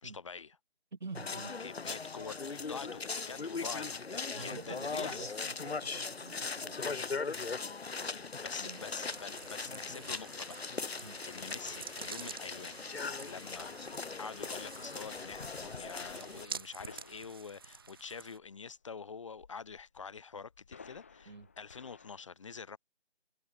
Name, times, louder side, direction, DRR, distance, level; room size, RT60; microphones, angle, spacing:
voice 1, 0.0-0.6 1.6-5.3 7.8-10.6 10.8-12.8 13.2-13.7 14.2-22.8, left 5 dB, 30° left, 4.3 m, -46 dB
voice 2, 0.9-1.6 4.3-7.0 8.6-8.9 11.0-11.2 21.3-21.5, right 3 dB, 45° right, 2.5 m, -47 dB
sound 1, 1.1-16.4, left 4 dB, 70° left, 0.9 m, -39 dB
sound 2, 8.7-18.4, right 5 dB, 20° right, 2.0 m, -49 dB
sound 3, 16.8-22.2, left 5 dB, 15° left, 1.3 m, -59 dB
figure-of-eight pair, 165°, 33 cm